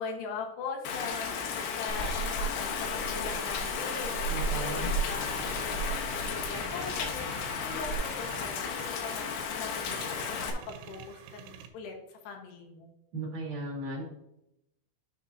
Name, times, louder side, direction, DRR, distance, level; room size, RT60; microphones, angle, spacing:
voice 1, 0.0-7.3 7.6-12.9, left 5 dB, 70° left, 2 dB, 3.0 m, -41 dB
Rain, 0.9-10.5, left 6 dB, 90° left, 3.6 m, -34 dB
Purr / Meow, 1.9-8.0, right 4 dB, 40° left, 2.1 m, -36 dB
sound 1, 3.5-11.7, right 8 dB, 80° right, 3.1 m, -49 dB
voice 2, 4.3-4.9 13.1-14.0, right 1 dB, 50° right, -2 dB, 3.3 m, -36 dB
10.5 x 6.8 x 2.7 m, 0.84 s
omnidirectional pair, 5.4 m